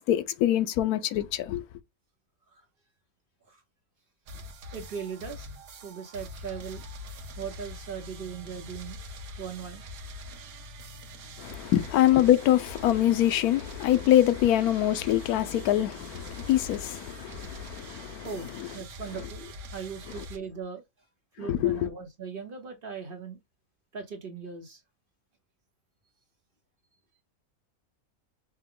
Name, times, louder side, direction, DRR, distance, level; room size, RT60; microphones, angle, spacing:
voice 1, 0.1-1.6 11.4-18.3 21.5-21.8, left 12 dB, 90° left, 1.1 m, -24 dB
voice 2, 4.3-6.8 7.4-9.0 9.4-9.9 10.2-10.4 18.2-20.8 21.4-23.4 23.9-24.8, right 6 dB, 40° right, 1.0 m, -39 dB
sound 1, 4.3-20.4, left 1 dB, 75° right, 1.2 m, -43 dB
5.6 x 2.2 x 3.7 m
omnidirectional pair, 1.5 m